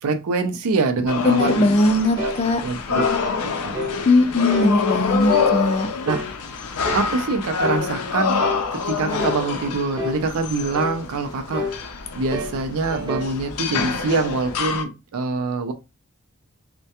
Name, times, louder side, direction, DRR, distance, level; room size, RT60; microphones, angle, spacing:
voice 1, 0.0-1.7 2.2-2.3 2.6-3.0 3.4-4.0 6.1-6.2 6.9-8.4 8.7-11.8 12.1-15.7, right 3 dB, 70° right, 0.4 m, -25 dB
sound 1, 1.1-14.8, left 5 dB, 85° left, 0.5 m, -27 dB
voice 2, 1.2-2.6 4.1-5.9, left 2 dB, 30° left, 0.4 m, -19 dB
sound 2, 1.4-1.6 2.2-2.4 3.0-3.2 3.7-4.0 4.5-4.8 5.3-5.5 6.1-6.3 6.8-7.1 7.6-7.9 8.4-8.7 9.2-9.4 10.0-10.2 10.7-11.0 11.5-11.8 12.3-12.6 12.9-13.3, left 2 dB, 20° right, 0.6 m, -27 dB
2.2 x 2.1 x 2.8 m
head